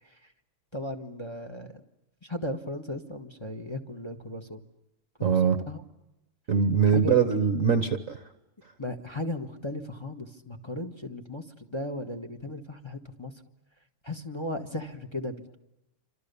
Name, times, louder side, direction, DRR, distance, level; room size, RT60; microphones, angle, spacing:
voice 1, 0.0-0.3 0.7-1.8 2.2-4.6 5.2-5.8 6.9-7.1 8.8-13.3 14.0-15.6, left 1 dB, 15° left, 5 dB, 1.3 m, -36 dB
voice 2, 5.2-5.6 6.5-8.2, right 6 dB, 45° right, 9 dB, 1.2 m, -22 dB
29.0 x 26.5 x 7.0 m, 0.95 s
omnidirectional pair, 2.4 m